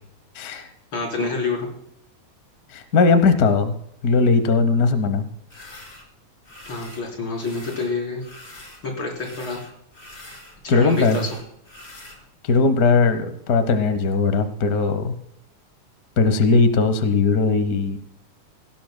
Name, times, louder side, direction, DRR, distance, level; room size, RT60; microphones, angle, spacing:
voice 1, 0.3-0.7 2.7-3.7 4.0-5.2 10.7-11.2 12.4-15.1 16.2-18.0, left 4 dB, 80° left, 10 dB, 0.8 m, -19 dB
voice 2, 0.9-1.7 6.7-8.2 8.8-9.6 10.6-11.3, left 3 dB, 45° left, 0 dB, 4.7 m, -27 dB
sound 1, 5.5-6.1 6.4-7.1 7.3-8.8 9.1-12.2, left 2 dB, 20° left, 2.0 m, -44 dB
17.5 x 17.0 x 2.2 m, 0.69 s
omnidirectional pair, 3.3 m